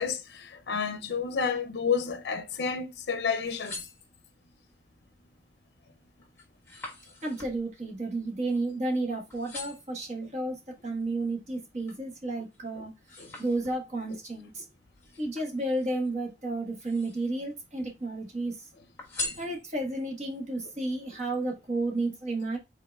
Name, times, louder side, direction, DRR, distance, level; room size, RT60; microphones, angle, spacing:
voice 1, 0.0-3.9 12.8-12.9 13.2-13.3 19.2-19.4, left 6 dB, 70° left, 0.5 m, -31 dB
sound 1, 3.4-4.6 5.1-5.5 5.9-9.0 9.3-10.0 10.6-12.1 12.5-14.1 15.0-16.1 16.6-17.4 17.8-18.5 19.0-20.0 20.6-20.7, left 3 dB, 15° left, 1.2 m, -43 dB
voice 2, 7.2-12.9 13.4-14.6 15.2-18.7 19.4-22.6, right 2 dB, 40° right, 1.3 m, -32 dB
5.5 x 3.9 x 2.3 m
head